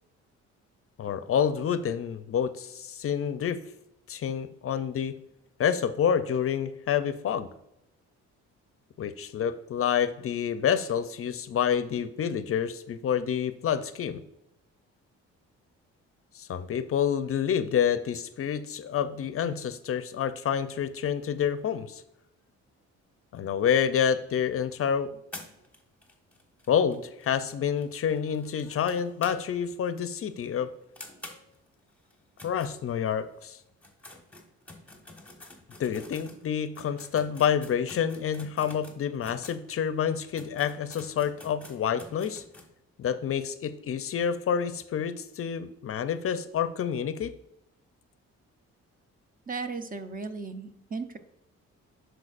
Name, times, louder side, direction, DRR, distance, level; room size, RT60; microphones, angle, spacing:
voice 1, 1.0-3.6 4.1-5.2 5.6-7.5 9.0-14.2 16.3-22.0 23.3-25.2 26.7-30.7 32.4-33.6 35.8-42.4 43.0-47.3, left 8 dB, 50° left, 12 dB, 0.5 m, -28 dB
sound 1, 25.3-29.7 30.0-30.1 30.4-30.5 31.0-33.3 33.7-39.6 40.1-40.2 40.3-42.7, left 2 dB, 5° left, 1.3 m, -48 dB
voice 2, 49.5-51.2, right 4 dB, 30° right, 9 dB, 0.7 m, -36 dB
10.5 x 4.5 x 2.5 m, 0.85 s
cardioid pair, 90°, 30 cm